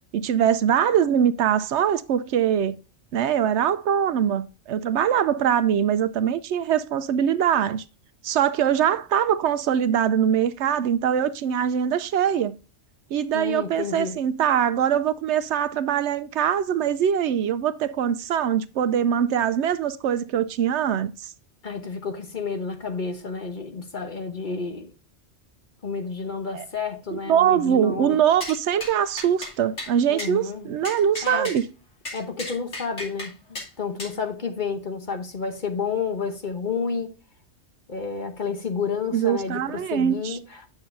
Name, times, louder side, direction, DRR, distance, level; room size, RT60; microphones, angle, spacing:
voice 1, 0.1-2.8 3.1-7.8 8.2-12.5 13.1-21.1 26.5-26.7 27.1-31.7 39.1-40.4, right 9 dB, 75° right, 0.8 m, -22 dB
voice 2, 13.3-14.2 21.6-24.9 25.8-28.2 30.1-30.7 31.2-31.5 32.1-37.1 37.9-40.7, left 5 dB, 45° left, 1.1 m, -30 dB
sound 1, 28.4-28.6 28.8-28.9 29.2-29.5 29.8-29.9 30.2-30.3 30.8-31.6 32.0-33.3 33.5-33.7 34.0-34.1, left 1 dB, 75° left, 3.0 m, -34 dB
8.9 x 6.9 x 2.6 m
omnidirectional pair, 1.2 m